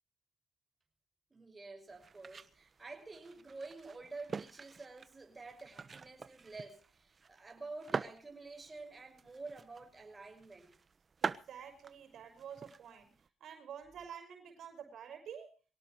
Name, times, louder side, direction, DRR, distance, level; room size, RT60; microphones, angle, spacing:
voice 1, 1.3-10.7, right 3 dB, 20° right, 6.1 m, -49 dB
sound 1, 1.9-13.3, right 5 dB, 40° right, 1.1 m, -45 dB
voice 2, 11.2-15.5, right 8 dB, 70° right, 5.8 m, -49 dB
23.5 x 17.5 x 3.2 m
cardioid pair, 90°, 0 cm